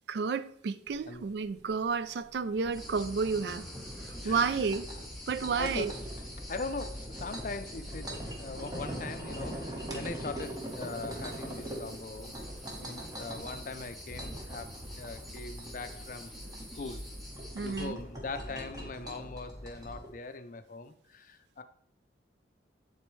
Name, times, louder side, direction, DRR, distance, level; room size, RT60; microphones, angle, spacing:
voice 1, 0.1-3.7 4.2-4.8 5.3-5.9 17.5-18.0, right 5 dB, 65° right, 0.3 m, -31 dB
sound 1, 0.9-20.1, right 1 dB, 20° right, 1.1 m, -42 dB
sound 2, 2.7-17.8, left 1 dB, ahead, 1.5 m, -47 dB
voice 2, 4.2-4.6 5.5-6.0 6.5-12.4 12.8-16.3 16.7-17.0 17.6-21.6, left 3 dB, 45° left, 0.4 m, -41 dB
sound 3, 10.4-17.6, right 2 dB, 35° right, 1.4 m, -56 dB
10.0 x 4.2 x 3.1 m
head